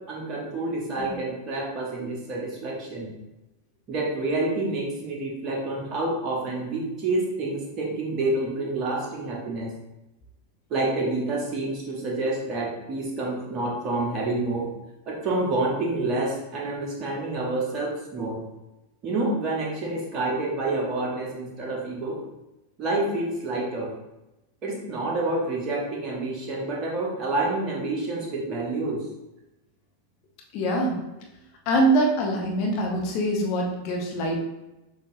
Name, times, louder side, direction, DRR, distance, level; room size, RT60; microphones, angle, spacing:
voice 1, 0.0-3.1 3.9-9.7 10.7-14.7 15.1-18.4 19.0-22.2 22.8-23.9 24.6-29.0, right 2 dB, 30° right, -2 dB, 1.2 m, -28 dB
voice 2, 30.5-31.0 31.7-34.4, right 1 dB, 40° left, 0 dB, 1.0 m, -24 dB
6.6 x 2.8 x 2.6 m, 0.97 s
figure-of-eight pair, 90°, 0 cm